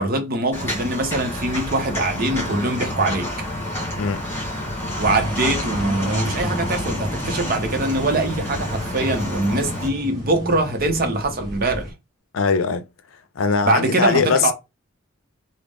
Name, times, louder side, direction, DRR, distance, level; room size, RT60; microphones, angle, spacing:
voice 1, 0.0-3.3 5.0-11.9 13.6-14.5, right 2 dB, 45° right, 0.8 m, -23 dB
Walk footsteps, 0.5-9.9, left 1 dB, 10° left, 1.8 m, -29 dB
sound 1, 5.0-11.9, equal, 20° right, 0.9 m, -33 dB
Bowed string instrument, 7.1-11.0, left 2 dB, 85° right, 0.9 m, -47 dB
voice 2, 12.3-12.8 13.1-14.5, left 5 dB, 80° left, 0.5 m, -21 dB
3.7 x 2.1 x 3.5 m
head